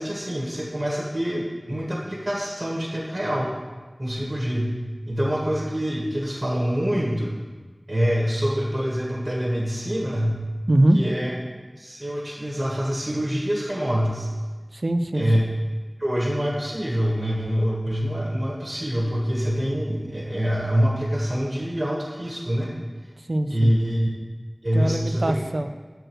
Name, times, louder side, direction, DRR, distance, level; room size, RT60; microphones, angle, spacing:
voice 1, 0.0-3.5 4.0-4.7 5.1-7.3 7.9-10.4 10.9-11.3 11.8-14.3 15.1-15.4 16.0-22.7 23.5-24.1 24.6-25.4, equal, 45° right, -3 dB, 1.4 m, -25 dB
voice 2, 10.7-11.0 14.7-15.3 23.2-23.7 24.7-25.7, right 1 dB, 75° right, 8 dB, 0.4 m, -22 dB
6.3 x 4.7 x 6.2 m, 1.3 s
wide cardioid pair, 45°, 0 cm